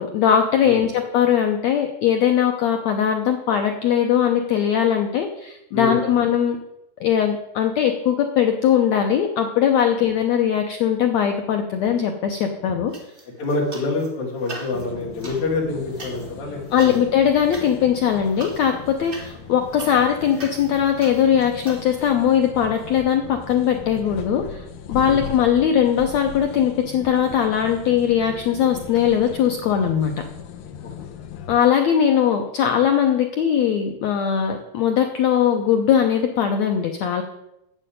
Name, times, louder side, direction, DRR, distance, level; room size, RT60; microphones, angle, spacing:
voice 1, 0.0-6.6 7.0-12.9 16.7-30.2 31.5-37.2, left 9 dB, 90° left, 5 dB, 1.5 m, -20 dB
voice 2, 5.7-6.1 13.4-16.6 16.8-17.0 25.0-25.2 31.0-31.1, left 3 dB, 50° left, -3 dB, 3.9 m, -26 dB
sound 1, 12.9-14.1 14.4-21.8, right 2 dB, 25° right, 1.2 m, -41 dB
sound 2, 14.7-31.6, left 7 dB, 70° left, 2.5 m, -38 dB
8.8 x 7.7 x 9.1 m, 0.86 s
omnidirectional pair, 4.3 m